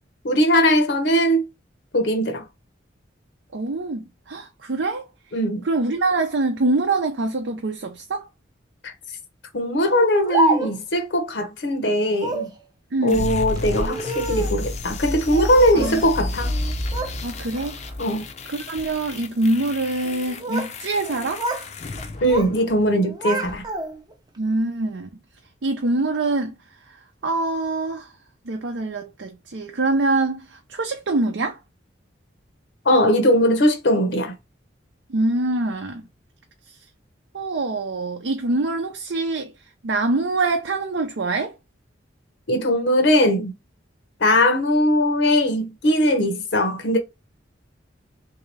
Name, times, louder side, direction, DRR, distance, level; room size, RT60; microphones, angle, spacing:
voice 1, 0.2-1.5 1.9-2.4 5.3-5.7 8.8-8.9 9.5-12.5 13.0-16.5 18.0-18.2 22.2-23.6 32.8-34.3 42.5-43.5 44.2-47.0, equal, 70° left, 0.8 m, -20 dB
voice 2, 3.5-5.1 5.6-8.3 12.9-13.3 15.7-16.0 17.2-17.8 18.5-21.4 24.4-25.1 25.6-26.5 27.2-28.1 28.5-31.6 35.1-36.0 37.3-39.5 39.8-41.5, right 2 dB, 75° right, 0.6 m, -24 dB
Speech, 9.9-11.0 12.1-12.6 13.6-14.6 15.3-16.1 16.4-17.2 17.5-17.9 18.6-18.9 20.0-20.8 21.0-21.7 22.0-22.6 22.9-24.1, right 1 dB, 20° right, 0.6 m, -28 dB
sound 1, 13.1-23.0, left 2 dB, 35° left, 0.5 m, -31 dB
3.6 x 2.8 x 3.2 m
head